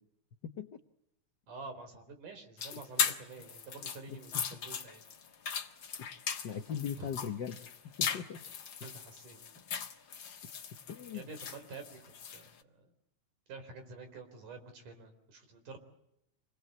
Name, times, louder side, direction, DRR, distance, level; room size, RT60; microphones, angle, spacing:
voice 1, 0.4-0.8 2.7-2.8 4.1-4.2 6.0-6.1 6.4-7.6 8.0-8.4 10.9-11.3, left 7 dB, 70° left, 8 dB, 1.0 m, -39 dB
voice 2, 1.5-5.0 7.0-7.3 8.8-9.4 11.1-12.9 13.5-15.8, right 3 dB, 75° right, 7 dB, 5.6 m, -48 dB
sound 1, 2.6-12.5, left 7 dB, 45° left, 1.8 m, -38 dB
27.5 x 20.5 x 8.0 m, 0.80 s
omnidirectional pair, 3.6 m